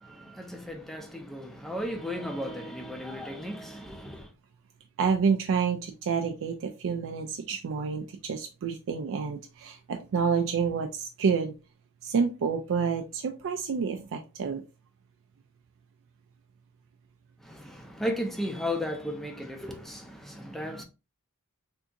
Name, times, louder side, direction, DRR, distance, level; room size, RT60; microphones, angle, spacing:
voice 1, 0.0-4.3 17.4-20.8, left 1 dB, ahead, 0.5 m, -35 dB
voice 2, 5.0-11.6 12.0-14.6, right 6 dB, 60° right, 0.4 m, -28 dB
3.5 x 2.8 x 2.5 m
head